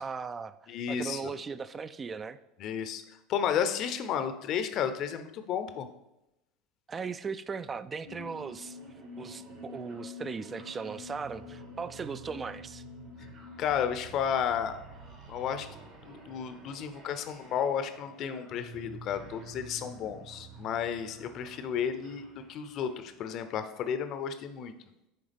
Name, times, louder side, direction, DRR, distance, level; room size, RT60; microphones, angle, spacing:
voice 1, 0.0-0.5 0.9-2.4 6.9-8.8 9.2-12.8, right 5 dB, 25° right, 14 dB, 0.4 m, -38 dB
voice 2, 0.7-1.3 2.6-3.0 3.3-5.9 13.6-14.8 15.2-15.7 16.0-24.7, left 8 dB, 50° left, 9 dB, 0.6 m, -32 dB
sound 1, 8.0-23.2, equal, 55° right, 1.7 m, -48 dB
9.9 x 3.5 x 3.4 m, 0.91 s
hypercardioid pair, 80°, 0 cm